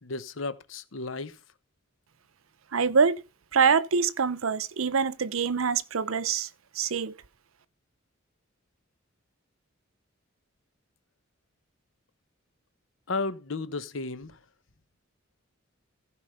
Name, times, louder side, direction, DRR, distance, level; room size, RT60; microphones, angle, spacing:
voice 1, 0.0-1.4 13.1-14.4, left 3 dB, 65° left, 1.0 m, -33 dB
voice 2, 2.7-3.2 3.5-6.5 6.7-7.1, right 5 dB, 80° right, 0.7 m, -25 dB
15.0 x 5.1 x 5.3 m
head